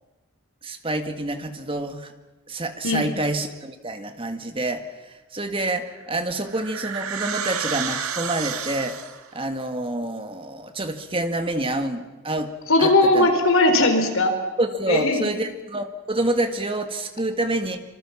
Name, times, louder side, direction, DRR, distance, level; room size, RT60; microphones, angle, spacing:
voice 1, 0.6-2.1 2.5-9.0 9.3-12.5 12.8-13.3 14.6-17.8, right 1 dB, 25° right, 7 dB, 1.8 m, -27 dB
sound 1, 5.9-9.3, right 7 dB, 70° right, 2.0 m, -31 dB
voice 2, 12.7-14.3 14.9-15.2, left 2 dB, 60° left, 6 dB, 4.1 m, -18 dB
25.5 x 25.0 x 7.3 m, 1.1 s
head